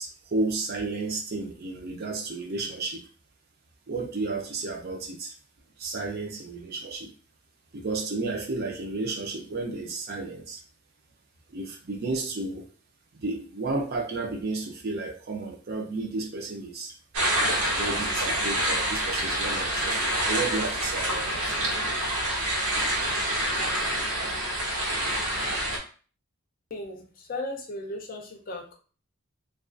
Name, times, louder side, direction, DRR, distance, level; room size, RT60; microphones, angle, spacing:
voice 1, 0.0-3.0 3.9-5.3 5.8-7.1 7.7-10.6 11.5-12.6 13.1-16.9 17.7-21.6, right 3 dB, 45° right, 2 dB, 0.5 m, -32 dB
sound 1, 17.1-25.8, right 1 dB, 80° right, 0.7 m, -27 dB
voice 2, 26.7-28.7, left 2 dB, 40° left, 2 dB, 0.5 m, -36 dB
2.3 x 2.3 x 2.4 m, 0.39 s
head